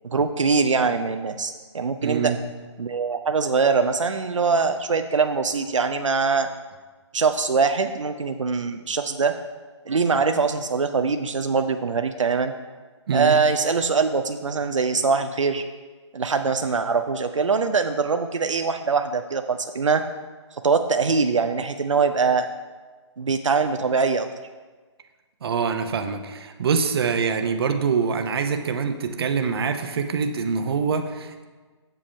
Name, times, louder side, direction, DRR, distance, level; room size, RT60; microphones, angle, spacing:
voice 1, 0.0-2.3 2.8-6.5 7.1-9.3 9.9-12.5 13.1-15.6 16.1-20.0 20.6-22.5 23.2-24.3, right 5 dB, 90° right, 7 dB, 0.5 m, -23 dB
voice 2, 2.0-2.4 13.1-13.3 25.4-31.4, right 5 dB, 55° right, 7 dB, 0.8 m, -24 dB
7.6 x 7.1 x 4.5 m, 1.4 s
figure-of-eight pair, 145°, 16 cm